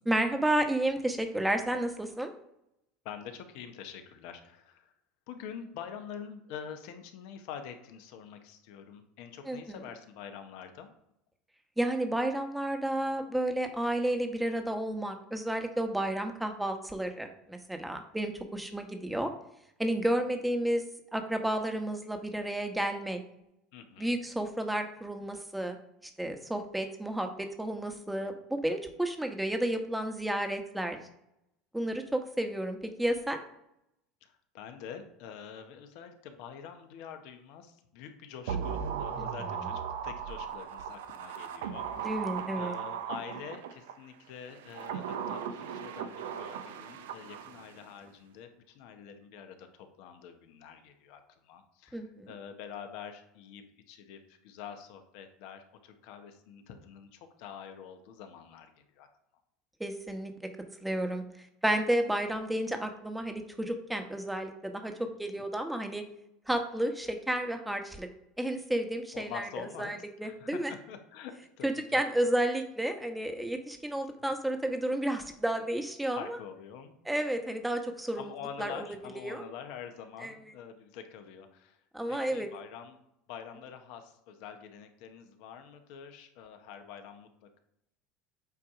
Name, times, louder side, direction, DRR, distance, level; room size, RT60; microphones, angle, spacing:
voice 1, 0.1-2.3 9.4-9.8 11.8-19.3 19.8-20.8 21.1-23.2 24.0-25.8 26.2-31.0 31.7-33.4 39.2-39.3 42.0-42.8 51.9-52.3 59.8-60.3 60.8-61.2 61.6-66.0 66.5-68.1 68.4-70.7 71.6-76.4 77.1-78.3 78.6-79.4 80.2-80.5 81.9-82.5, right 1 dB, 5° right, 5 dB, 1.1 m, -31 dB
voice 2, 3.0-4.9 5.3-10.9 23.7-24.2 34.2-42.1 42.6-59.1 65.1-65.4 69.1-69.9 70.2-72.0 76.1-76.9 78.2-81.8 82.1-83.0 83.3-87.6, left 8 dB, 70° left, 7 dB, 1.0 m, -46 dB
sound 1, 38.5-43.9 44.6-47.8 48.1-48.2, right 7 dB, 85° right, 0.6 m, -37 dB
8.2 x 2.9 x 4.9 m, 0.82 s
supercardioid pair, 95°, 0 cm